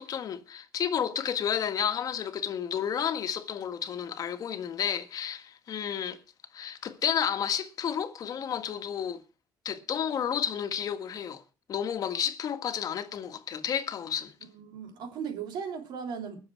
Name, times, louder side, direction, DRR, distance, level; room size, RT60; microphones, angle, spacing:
voice 1, 0.0-6.2 6.5-9.2 9.6-11.4 11.7-14.3, left 8 dB, 55° left, 1.6 m, -31 dB
voice 2, 14.5-16.4, right 7 dB, 75° right, 3.3 m, -37 dB
21.0 x 7.1 x 4.5 m
cardioid pair, 100°, 8 cm